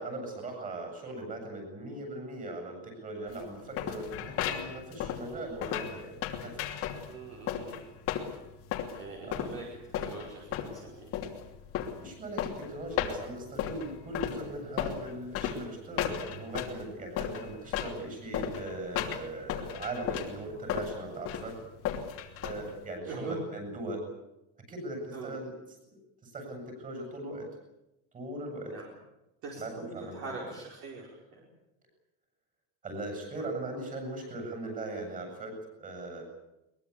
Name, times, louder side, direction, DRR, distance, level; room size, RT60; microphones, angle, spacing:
voice 1, 0.0-6.6 9.3-9.5 12.0-21.6 22.4-24.1 24.7-25.5 26.2-27.5 28.1-28.7 29.6-30.5 32.8-36.2, right 2 dB, 20° right, 3 dB, 8.0 m, -39 dB
sound 1, 3.3-22.9, left 9 dB, 35° left, 2.9 m, -35 dB
voice 2, 5.2-5.6 7.1-7.9 8.9-9.6 9.9-11.1 22.3-22.4 23.0-23.4 25.1-25.3 28.7-28.9 29.4-31.5 33.3-33.5, right 3 dB, 40° right, -2 dB, 5.0 m, -43 dB
22.5 x 22.0 x 8.5 m, 0.92 s
cardioid pair, 175°, 37 cm